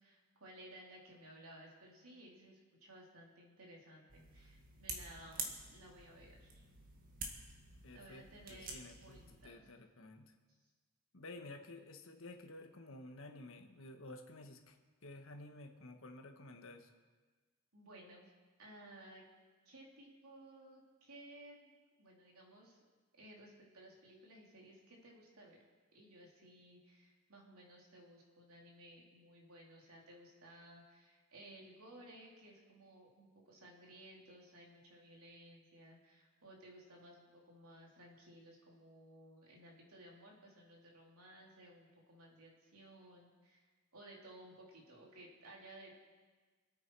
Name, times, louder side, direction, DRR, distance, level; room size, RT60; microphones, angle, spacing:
voice 1, 0.0-6.6 7.9-9.7 10.5-10.6 17.7-18.3 18.6-19.2 19.6-22.8 23.2-25.6 25.9-46.0, right 1 dB, 85° right, -2 dB, 3.2 m, -58 dB
sound 1, 4.1-9.4, right 3 dB, 40° right, 1.8 m, -48 dB
voice 2, 7.8-8.2 8.5-10.3 11.1-14.8 15.0-16.9, left 2 dB, 65° left, 4 dB, 1.4 m, -52 dB
25.0 x 8.8 x 4.7 m, 1.4 s
head